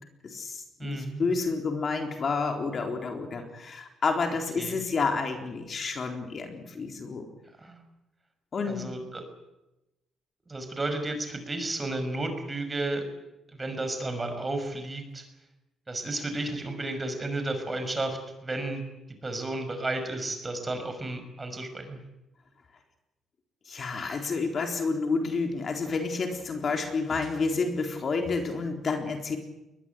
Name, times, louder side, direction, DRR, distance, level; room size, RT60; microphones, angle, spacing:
voice 1, 0.2-7.3 8.5-8.9 23.7-29.4, left 4 dB, 45° left, 4 dB, 4.0 m, -30 dB
voice 2, 0.8-1.2 4.6-4.8 7.6-7.8 8.7-9.2 10.5-13.0 13.5-15.3 15.9-18.8 19.2-22.0, right 2 dB, 20° right, 7 dB, 6.0 m, -32 dB
22.0 x 20.5 x 9.3 m, 0.97 s
cardioid pair, 90°, 0 cm